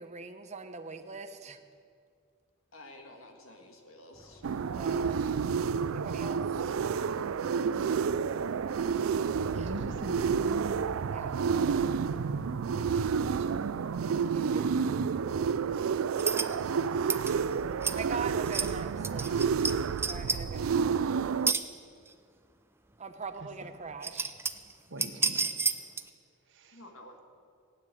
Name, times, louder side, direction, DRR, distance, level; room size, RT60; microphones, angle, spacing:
voice 1, 0.0-1.6 4.7-5.3 5.9-7.1 9.5-9.7 11.1-11.4 14.3-14.8 17.9-19.3 20.1-21.0 23.0-24.3, right 4 dB, 35° right, 8 dB, 0.9 m, -42 dB
voice 2, 2.7-4.4 26.7-27.2, left 1 dB, 90° left, 3 dB, 1.9 m, -51 dB
sound 1, 4.1-14.1, equal, 15° left, 1.0 m, -54 dB
sound 2, 4.4-21.5, right 6 dB, 85° right, 0.4 m, -30 dB
voice 3, 9.5-10.9 13.4-13.5 23.4-23.5 24.9-25.7 26.5-26.8, right 1 dB, 65° right, 6 dB, 1.3 m, -40 dB
sound 3, 16.2-16.5 17.1-17.3 17.8-18.0 18.4-18.7 19.0-19.7 20.0-20.4 21.5-21.6 22.1-22.2 23.4-23.5 23.9-24.7 25.0-26.1, right 4 dB, 10° right, 0.5 m, -29 dB
15.5 x 9.3 x 7.5 m, 2.2 s
head